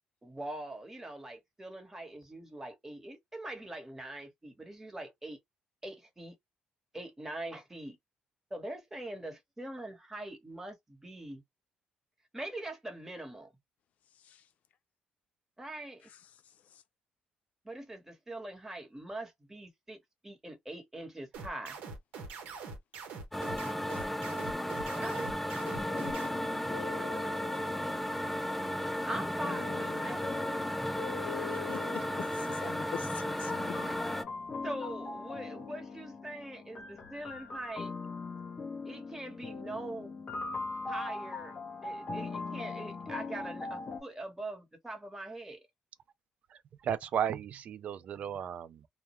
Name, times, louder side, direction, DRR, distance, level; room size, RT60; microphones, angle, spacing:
voice 1, 0.2-5.4 5.8-6.3 6.9-8.0 8.5-11.4 12.3-13.5 15.6-16.1 17.6-20.0 20.2-21.8 24.9-25.3 29.1-30.4 34.6-37.9 38.9-40.1 40.9-41.6 41.8-45.6, right 1 dB, 15° right, 1.1 m, -42 dB
sound 1, 21.3-26.3, right 4 dB, 80° right, 0.9 m, -43 dB
sound 2, 23.3-34.2, left 1 dB, 5° left, 0.4 m, -34 dB
sound 3, 25.6-44.0, left 4 dB, 45° left, 0.8 m, -41 dB
voice 2, 31.7-33.8, left 9 dB, 65° left, 0.4 m, -43 dB
voice 3, 46.5-48.9, right 8 dB, 60° right, 0.4 m, -35 dB
2.2 x 2.1 x 2.9 m
cardioid pair, 80°, 3 cm